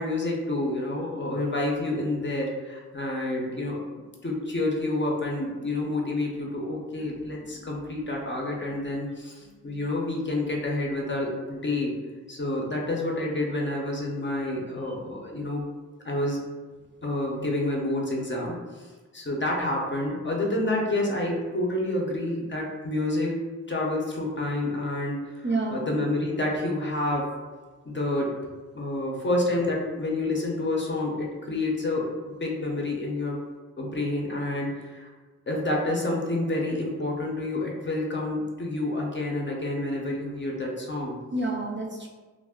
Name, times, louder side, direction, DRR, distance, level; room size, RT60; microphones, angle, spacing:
voice 1, 0.0-11.9 12.3-15.7 16.0-16.4 17.0-18.9 19.1-23.3 23.7-25.4 25.7-27.3 27.8-28.4 28.7-33.4 33.8-35.1 35.5-41.2, left 2 dB, 35° left, -1 dB, 0.6 m, -28 dB
voice 2, 7.0-7.7 8.6-8.7 9.6-9.8 25.4-26.0 41.3-42.1, right 2 dB, 35° right, 0 dB, 0.4 m, -31 dB
2.3 x 2.1 x 3.5 m, 1.4 s
cardioid pair, 65°, 32 cm